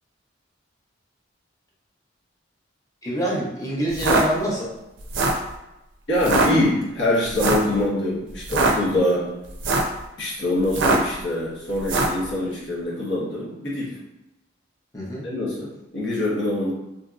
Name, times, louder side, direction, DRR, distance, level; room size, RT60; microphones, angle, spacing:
voice 1, 3.0-4.7 14.9-15.3, equal, 15° left, -5 dB, 0.7 m, -26 dB
sound 1, 3.9-4.2 5.0-5.5 6.2-6.5 7.4-7.7 8.4-8.7 9.5-10.0 10.7-11.1 11.8-12.2, right 3 dB, 70° right, 0.4 m, -21 dB
voice 2, 6.1-9.3 10.2-14.0 15.2-15.7 15.9-16.7, left 1 dB, 65° left, -6 dB, 1.0 m, -24 dB
2.9 x 2.6 x 2.4 m, 0.93 s
head